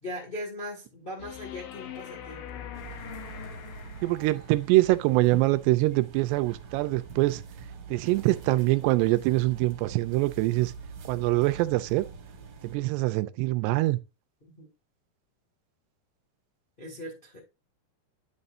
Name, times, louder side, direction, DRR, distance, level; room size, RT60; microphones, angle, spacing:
voice 1, 0.0-2.8 14.6-14.7 16.8-17.4, left 1 dB, 25° left, 1.0 m, -39 dB
sound 1, 1.2-4.5 7.2-7.3, left 10 dB, 70° left, 2.2 m, -42 dB
sound 2, 2.7-12.8, right 5 dB, 55° right, 2.5 m, -44 dB
voice 2, 4.0-7.4 7.9-10.7 11.1-12.0 12.6-14.0, right 19 dB, 85° right, 2.7 m, -24 dB
10.0 x 5.4 x 2.6 m
omnidirectional pair, 4.8 m